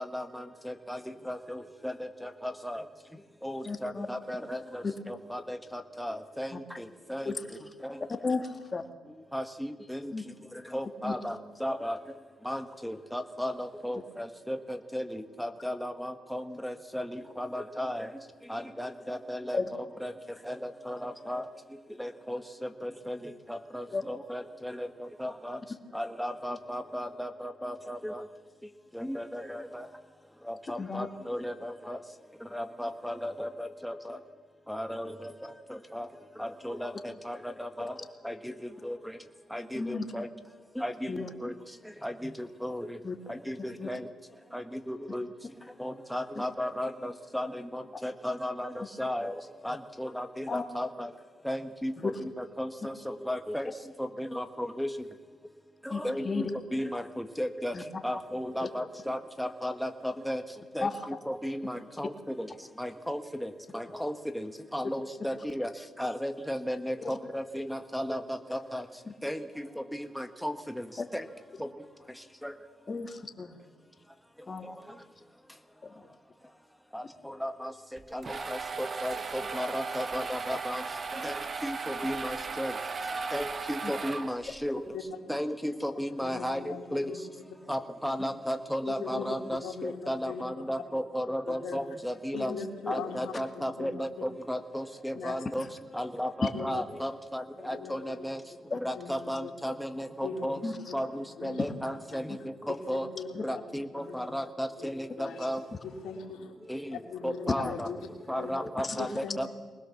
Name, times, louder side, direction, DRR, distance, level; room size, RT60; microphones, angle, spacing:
voice 1, 0.0-2.8 3.4-7.3 7.8-8.1 9.3-10.1 10.5-12.0 12.4-18.1 18.5-20.1 20.4-21.4 22.0-25.6 25.9-28.3 28.9-29.9 30.4-32.0 32.4-34.2 34.7-36.1 36.4-37.9 38.2-39.2 39.5-40.3 40.7-41.6 42.0-43.0 43.3-44.1 44.5-45.3 45.8-51.1 51.4-53.7 54.0-54.9 55.8-57.8 58.0-60.4 60.7-62.5 62.8-65.7 66.0-68.9 69.2-70.9 71.1-71.3 71.6-71.7 72.4-72.5 74.6-74.8 76.9-77.7 78.1-80.8 81.1-82.7 83.3-84.9 85.3-87.1 87.7-92.5 92.9-95.7 95.9-98.4 98.8-100.6 100.9-103.1 103.4-105.6 106.7-107.9 108.3-109.5, equal, ahead, 7 dB, 1.5 m, -35 dB
voice 2, 3.7-4.1 7.2-7.3 8.2-8.8 10.1-10.2 11.0-11.1 19.5-19.6 23.9-24.0 30.8-31.1 39.8-40.0 41.1-41.3 43.0-43.2 43.8-43.9 50.5-50.6 55.9-56.0 56.2-56.5 57.7-57.8 60.8-60.9 72.9-73.6 74.5-74.7 75.8-75.9 98.7-98.8 100.6-100.7 108.8-108.9, left 4 dB, 30° left, 6 dB, 2.1 m, -33 dB
sound 1, 78.0-84.7, right 4 dB, 35° right, 1.2 m, -36 dB
voice 3, 86.2-87.2 88.9-90.4 91.5-91.8 92.3-93.9 95.1-95.3 96.4-96.8 97.6-98.1 98.9-99.5 100.2-100.7 101.4-101.6 102.1-102.2 102.7-103.6 103.9-104.3 104.8-104.9 105.1-105.5 105.8-106.5 106.9-108.0 108.3-108.5 109.0-109.5, left 5 dB, 80° left, 1 dB, 3.5 m, -40 dB
23.5 x 20.0 x 7.2 m, 1.4 s
cardioid pair, 90°, 0 cm